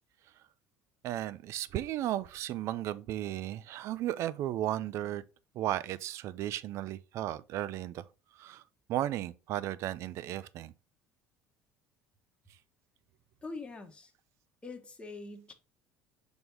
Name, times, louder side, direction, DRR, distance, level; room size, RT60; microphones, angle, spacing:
voice 1, 1.0-5.2 5.5-8.1 8.3-8.6 8.9-10.7, right 13 dB, 60° right, 0.5 m, -35 dB
voice 2, 13.4-14.1 14.6-15.5, left 3 dB, 20° left, 1.2 m, -43 dB
6.2 x 3.5 x 4.3 m
supercardioid pair, 90°, 5 cm